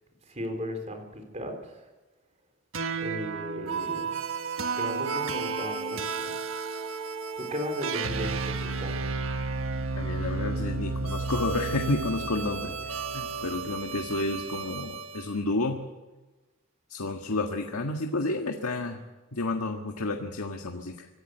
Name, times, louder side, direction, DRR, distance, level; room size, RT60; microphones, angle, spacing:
voice 1, 0.3-1.5 3.0-4.1 4.8-6.3 7.4-9.0, equal, 30° right, 5 dB, 4.1 m, -36 dB
sound 1, 2.7-15.2, right 4 dB, 65° right, 1.4 m, -32 dB
voice 2, 9.9-15.8 16.9-19.0 19.3-21.1, left 2 dB, 85° left, 3 dB, 1.7 m, -31 dB
25.5 x 15.5 x 8.0 m, 1.2 s
head